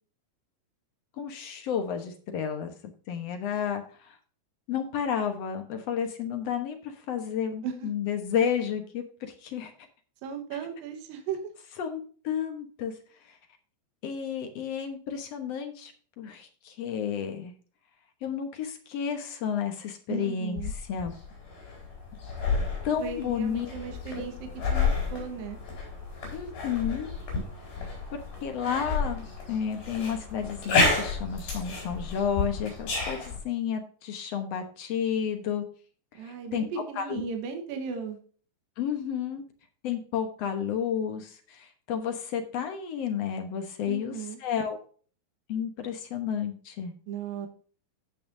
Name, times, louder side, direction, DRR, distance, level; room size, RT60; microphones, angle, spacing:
voice 1, 1.2-2.7 3.1-4.1 4.7-9.7 11.8-12.9 14.0-15.9 16.2-17.5 18.2-20.6 20.9-21.1 22.8-23.7 24.2-24.3 26.3-27.1 28.4-35.6 36.3-36.7 37.0-37.2 38.8-39.4 39.8-44.1 44.4-44.8 45.5-46.9, left 8 dB, 60° left, 6 dB, 1.8 m, -31 dB
voice 2, 10.2-11.4 20.1-20.7 23.0-25.6 36.1-38.2 43.9-44.4 47.1-47.5, right 6 dB, 75° right, 5 dB, 3.1 m, -36 dB
sound 1, 20.6-33.4, left 4 dB, 85° left, 6.5 m, -31 dB
16.0 x 6.0 x 2.7 m, 0.42 s
omnidirectional pair, 4.2 m